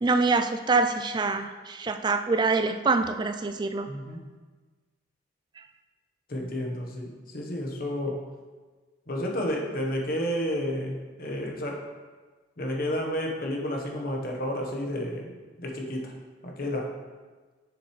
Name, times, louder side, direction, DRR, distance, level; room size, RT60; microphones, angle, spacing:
voice 1, 0.0-3.9, right 3 dB, 25° right, 9 dB, 0.3 m, -25 dB
voice 2, 3.9-4.2 6.3-8.2 9.1-11.8 12.6-15.3 15.6-16.1 16.4-16.9, equal, 50° left, 0 dB, 1.1 m, -31 dB
7.2 x 6.7 x 3.2 m, 1.4 s
head